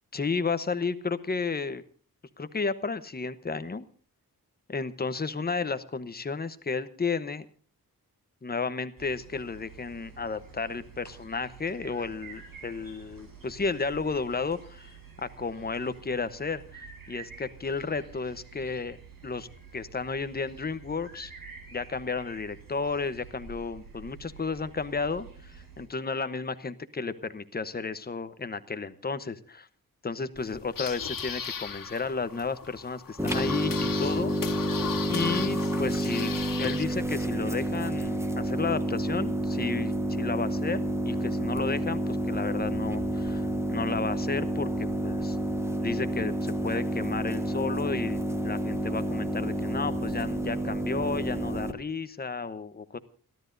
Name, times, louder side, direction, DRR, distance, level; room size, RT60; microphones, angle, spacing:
voice 1, 0.1-1.8 2.4-3.8 4.7-7.5 8.4-14.9 15.2-19.0 19.2-21.3 21.7-29.7 30.0-34.4 35.1-45.4 45.8-53.0, left 4 dB, 25° left, 12 dB, 1.0 m, -33 dB
sound 1, 9.0-25.9, right 5 dB, 65° right, 7.1 m, -49 dB
sound 2, 30.4-36.8, left 7 dB, 65° left, 1.9 m, -37 dB
sound 3, 33.2-51.7, right 1 dB, 5° right, 1.3 m, -29 dB
29.5 x 12.5 x 2.6 m, 0.42 s
wide cardioid pair, 170°, 36 cm